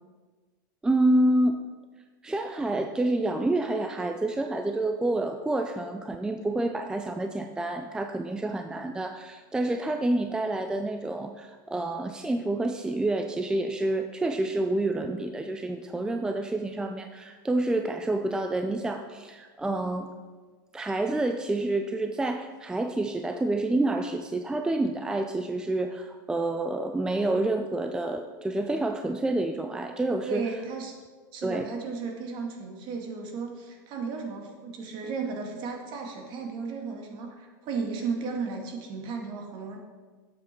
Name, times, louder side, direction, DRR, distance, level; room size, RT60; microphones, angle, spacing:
voice 1, 0.8-1.6 2.2-20.1 20.7-30.5 31.4-31.7, right 2 dB, 5° right, 6 dB, 0.5 m, -28 dB
voice 2, 30.2-30.9 31.3-39.8, right 4 dB, 45° right, 2 dB, 2.2 m, -34 dB
11.0 x 7.8 x 4.5 m, 1.4 s
supercardioid pair, 125°, 11 cm